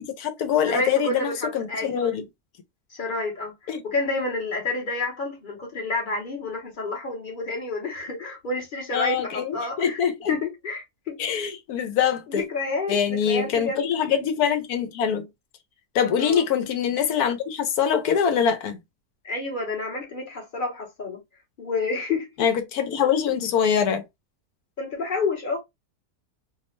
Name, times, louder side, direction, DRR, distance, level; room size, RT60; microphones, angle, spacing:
voice 1, 0.0-2.2 3.7-3.8 8.9-10.3 11.2-12.4 12.9-15.3 15.9-18.8 22.4-24.0, left 8 dB, 85° left, 1.2 m, -24 dB
voice 2, 0.6-2.2 2.9-10.0 10.3-11.2 12.3-13.9 16.2-16.4 19.2-21.2 21.6-22.3 24.8-25.6, left 3 dB, 40° left, 0.8 m, -29 dB
2.8 x 2.1 x 3.0 m
omnidirectional pair, 1.6 m